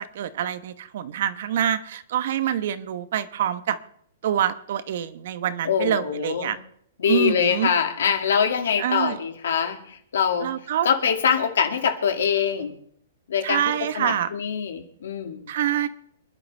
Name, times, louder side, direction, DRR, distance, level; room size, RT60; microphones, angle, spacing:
voice 1, 0.0-3.8 4.2-6.6 7.1-7.7 8.8-9.2 10.4-10.9 13.4-14.3 15.5-15.9, right 10 dB, 55° right, 13 dB, 1.0 m, -26 dB
voice 2, 5.6-6.5 7.0-10.5 10.8-12.8 13.3-15.5, left 7 dB, 80° left, 6 dB, 2.2 m, -24 dB
27.5 x 11.0 x 3.4 m, 0.65 s
hypercardioid pair, 160°, 0 cm